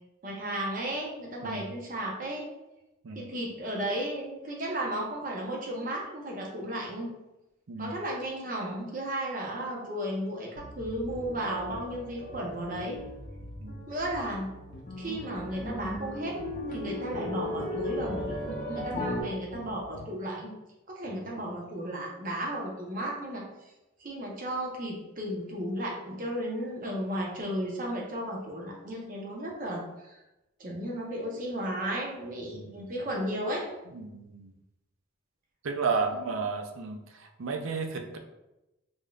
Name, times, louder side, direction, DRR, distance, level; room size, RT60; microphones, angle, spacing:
voice 1, 0.2-2.5 3.1-7.1 7.8-13.0 13.9-14.5 15.0-16.4 16.7-20.5 20.9-23.5 24.0-30.2 30.6-33.7 36.1-36.3, right 1 dB, 40° right, -2 dB, 0.7 m, -34 dB
voice 2, 1.4-1.7 3.0-3.3 7.7-8.0 13.6-13.9 21.2-21.4 32.5-32.9 33.9-34.5 35.6-38.2, right 4 dB, 75° right, 4 dB, 0.5 m, -33 dB
sound 1, 10.6-20.1, equal, 85° left, 0.6 m, -46 dB
sound 2, 11.1-13.4 13.7-14.2 14.5-19.2, left 1 dB, 40° left, 0.6 m, -37 dB
4.9 x 2.6 x 2.3 m, 0.96 s
head